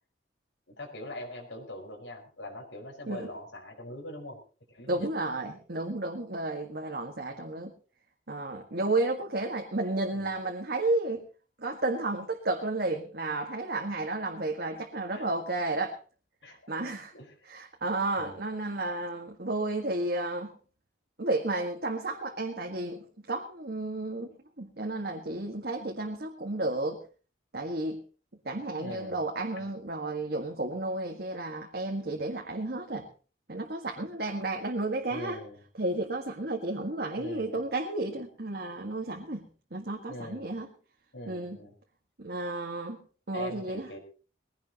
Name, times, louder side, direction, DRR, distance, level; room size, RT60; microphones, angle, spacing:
voice 1, 0.7-4.4 4.7-5.1 10.1-10.3 15.1-15.3 16.4-16.7 17.1-17.4 18.2-18.4 28.8-29.2 29.6-29.7 35.1-35.6 37.2-37.6 40.1-40.5 41.1-41.8 43.3-44.0, left 1 dB, 85° left, 1 dB, 4.9 m, -42 dB
voice 2, 4.9-7.7 8.3-11.2 11.6-15.9 16.5-17.1 17.5-20.5 21.2-24.3 24.6-27.0 27.5-28.0 28.5-33.1 33.5-35.4 35.8-39.5 39.7-40.7 41.3-41.6 42.2-43.0 43.3-43.9, right 2 dB, 55° right, 1 dB, 1.8 m, -32 dB
21.0 x 16.5 x 3.0 m, 0.37 s
head